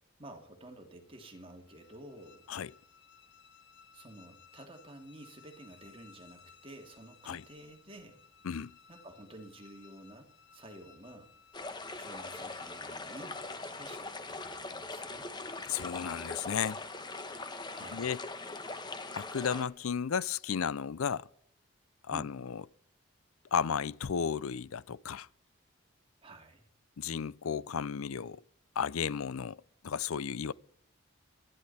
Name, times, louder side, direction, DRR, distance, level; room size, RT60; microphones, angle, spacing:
voice 1, 0.2-2.5 3.9-8.2 8.9-11.3 12.0-13.4 13.7-15.3 17.7-18.2 22.1-22.3 26.2-26.7, right 1 dB, 25° right, 2.6 m, -51 dB
sound 1, 1.0-14.4, left 7 dB, 55° left, 1.5 m, -60 dB
voice 2, 8.4-8.7 15.7-16.8 17.9-18.6 19.1-21.3 22.0-22.6 23.5-25.3 27.0-28.4 28.8-30.5, left 7 dB, 85° left, 0.5 m, -34 dB
sound 2, 11.5-19.6, left 3 dB, 20° left, 1.2 m, -41 dB
22.5 x 11.0 x 4.3 m
head